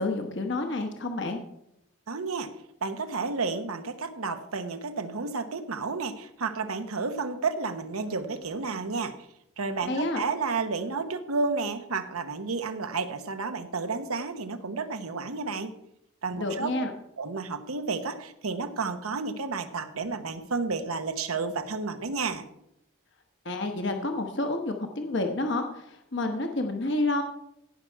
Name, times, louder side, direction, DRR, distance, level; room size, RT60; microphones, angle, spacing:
voice 1, 0.0-1.4 9.8-10.2 16.4-16.9 23.4-27.2, left 2 dB, 55° left, 4 dB, 1.0 m, -29 dB
voice 2, 2.1-2.5 2.8-9.1 9.6-15.7 16.2-16.7 17.2-22.4, right 4 dB, 90° right, 9 dB, 1.0 m, -31 dB
16.5 x 6.1 x 4.6 m, 0.80 s
head